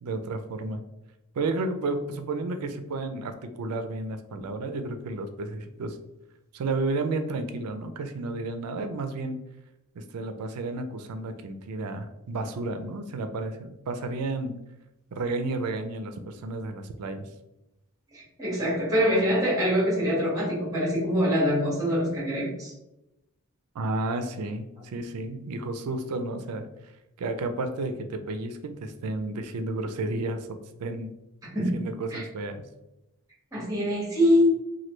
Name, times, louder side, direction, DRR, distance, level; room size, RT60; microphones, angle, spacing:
voice 1, 0.0-0.8 1.4-6.0 6.5-9.4 10.0-14.5 15.1-17.3 23.7-26.7 27.2-30.4 30.8-31.1 31.5-32.6, right 2 dB, 85° right, 8 dB, 0.4 m, -32 dB
voice 2, 18.1-22.7 31.5-31.8 32.1-32.2 33.5-34.5, equal, 15° right, -6 dB, 1.4 m, -24 dB
3.1 x 2.2 x 3.1 m, 0.92 s
head